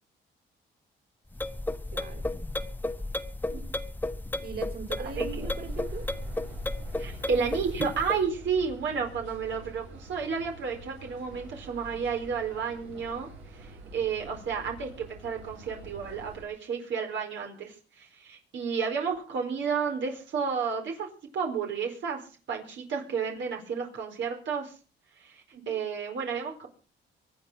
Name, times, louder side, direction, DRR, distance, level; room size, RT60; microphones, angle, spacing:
sound 1, 1.3-8.2, left 2 dB, 10° left, 1.1 m, -33 dB
voice 1, 1.9-2.3 4.4-6.1 25.5-25.8, right 5 dB, 50° right, 3 dB, 5.7 m, -40 dB
sound 2, 5.0-16.4, right 2 dB, 85° right, 6.0 m, -46 dB
voice 2, 5.2-5.5 7.0-13.3 13.9-24.7 25.2-26.7, right 6 dB, 70° right, 2 dB, 4.5 m, -32 dB
24.0 x 8.7 x 5.7 m, 0.38 s
cardioid pair, 90°, 20 cm